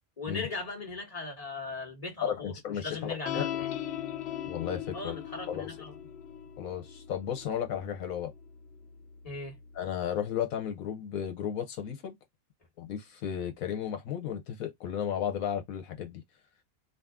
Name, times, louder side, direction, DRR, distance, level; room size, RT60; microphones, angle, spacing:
voice 1, 0.2-2.6 2.8-3.7 4.9-5.9 9.2-9.5, left 3 dB, 25° left, 1.5 m, -38 dB
voice 2, 2.2-3.6 4.5-5.1 5.5-5.8 6.6-8.3 9.7-12.1 12.8-16.2, left 9 dB, 80° left, 1.2 m, -34 dB
sound 1, 3.3-9.9, left 10 dB, 65° left, 0.7 m, -40 dB
3.9 x 2.4 x 3.6 m
omnidirectional pair, 1.4 m